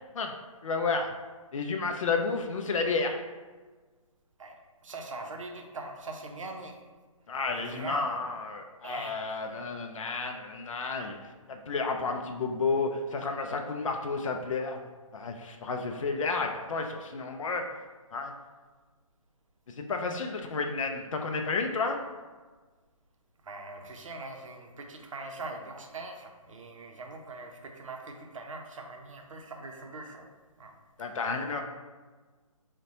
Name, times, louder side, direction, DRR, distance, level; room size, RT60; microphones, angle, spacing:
voice 1, 0.6-1.1 1.5-3.2 7.3-11.2 11.5-14.8 15.1-17.6 18.1-18.3 19.8-22.0 31.0-31.6, left 4 dB, 65° left, 4 dB, 0.4 m, -31 dB
voice 2, 4.8-6.8 7.5-8.2 8.8-9.4 23.4-30.3 30.6-30.8, right 3 dB, 65° right, 3 dB, 0.5 m, -42 dB
3.9 x 2.1 x 2.7 m, 1.3 s
figure-of-eight pair, 145°, 18 cm